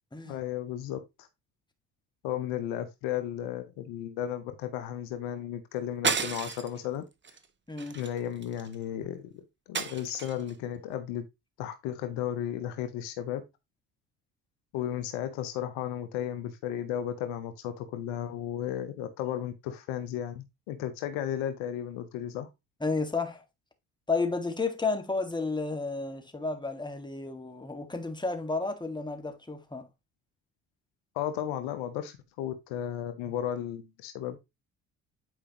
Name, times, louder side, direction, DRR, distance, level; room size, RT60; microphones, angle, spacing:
voice 1, 0.3-1.3 2.2-7.0 7.9-11.2 11.6-13.4 14.7-22.5 31.1-34.4, left 10 dB, 75° left, 1.0 m, -34 dB
sound 1, 6.0-6.8 7.2-7.4 7.8-8.7 9.7-10.5, right 5 dB, 30° right, 1.0 m, -32 dB
voice 2, 7.7-8.0 22.8-23.4 24.1-29.9, left 3 dB, 10° left, 1.9 m, -32 dB
9.1 x 4.9 x 3.0 m
hypercardioid pair, 55°, 40 cm